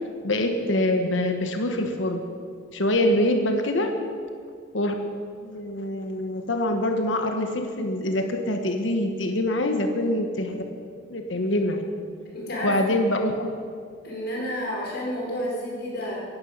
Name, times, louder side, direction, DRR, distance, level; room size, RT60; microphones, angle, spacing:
voice 1, 0.2-2.2 2.7-3.9 4.7-4.9 5.4-10.6 11.1-11.8 12.6-13.5, left 1 dB, 80° left, 5 dB, 1.2 m, -24 dB
voice 2, 12.2-12.9 14.0-16.2, equal, 60° left, -3 dB, 4.5 m, -30 dB
11.0 x 11.0 x 8.0 m, 2.2 s
head